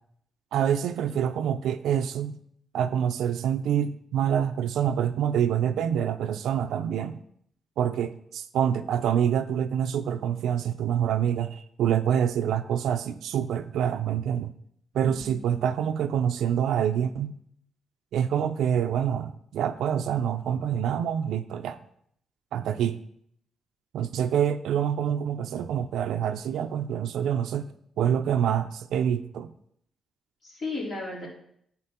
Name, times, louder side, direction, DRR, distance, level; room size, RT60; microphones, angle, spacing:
voice 1, 0.5-2.4 2.7-7.2 7.8-14.5 14.9-17.3 18.1-21.8 22.5-23.0 23.9-29.5, right 9 dB, 85° right, 8 dB, 0.4 m, -26 dB
voice 2, 14.9-15.6 30.4-31.3, left 2 dB, 60° left, -5 dB, 3.2 m, -35 dB
9.9 x 4.5 x 4.3 m, 0.69 s
cardioid pair, 95°, 0 cm